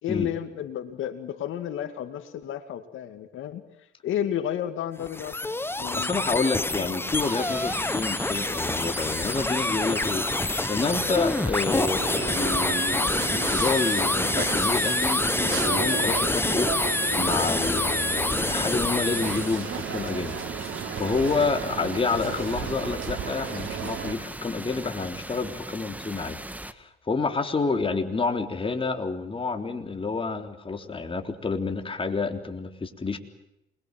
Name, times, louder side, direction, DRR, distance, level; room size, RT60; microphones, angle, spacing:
voice 1, 0.0-6.4 6.8-6.9 27.7-27.9, left 10 dB, 80° left, 8 dB, 2.3 m, -32 dB
sound 1, 5.0-19.6, left 2 dB, 10° left, 1.0 m, -27 dB
voice 2, 5.9-16.7 17.2-26.4 26.7-33.2, left 4 dB, 25° left, 5 dB, 3.7 m, -29 dB
sound 2, 7.2-26.7, right 1 dB, 10° right, 1.8 m, -38 dB
sound 3, 12.0-24.1, right 8 dB, 80° right, 3.8 m, -34 dB
27.5 x 22.0 x 7.8 m, 0.85 s
cardioid pair, 90°, 20 cm